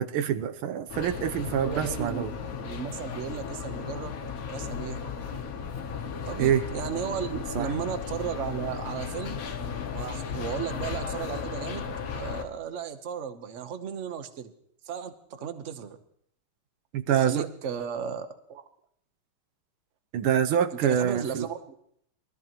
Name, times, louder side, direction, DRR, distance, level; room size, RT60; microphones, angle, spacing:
voice 1, 0.0-2.3 6.4-6.7 7.6-7.7 16.9-17.5 20.1-21.5, right 9 dB, 80° right, 9 dB, 1.6 m, -26 dB
sound 1, 0.9-12.4, left 6 dB, 50° left, 1.2 m, -35 dB
voice 2, 1.6-2.3 2.6-4.2 4.4-5.0 6.2-9.4 9.9-11.9 12.1-14.5 14.8-16.0 17.1-18.6 20.7-21.7, right 7 dB, 50° right, 9 dB, 1.0 m, -35 dB
23.0 x 14.0 x 3.0 m, 0.70 s
omnidirectional pair, 2.3 m